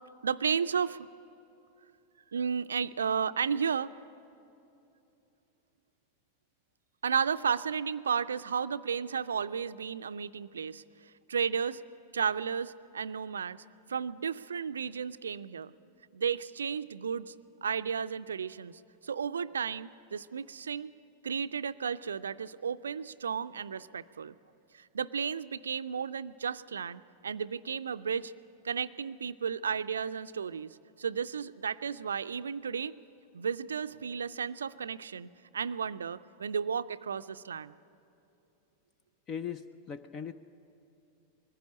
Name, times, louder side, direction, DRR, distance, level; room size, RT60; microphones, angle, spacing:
voice 1, 0.2-1.1 2.3-4.0 7.0-10.8 11.3-11.8 12.1-15.7 16.1-17.3 17.6-20.9 21.2-24.3 24.7-28.3 28.6-32.9 33.3-37.7, right 6 dB, 70° right, 14 dB, 0.4 m, -33 dB
voice 2, 39.3-40.3, left 7 dB, 30° left, 12 dB, 0.6 m, -39 dB
21.0 x 16.0 x 10.0 m, 2.8 s
figure-of-eight pair, 90°, 0 cm